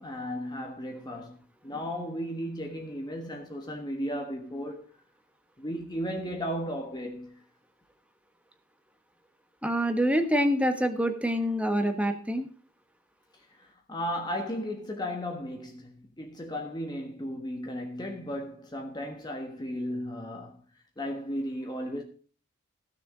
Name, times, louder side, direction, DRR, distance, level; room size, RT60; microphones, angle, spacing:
voice 1, 0.0-4.9 5.6-7.3 13.6-20.6 21.0-22.0, equal, 20° left, 1.3 m, -35 dB
voice 2, 9.6-12.5, equal, 5° right, 1.3 m, -26 dB
15.5 x 6.7 x 5.0 m
head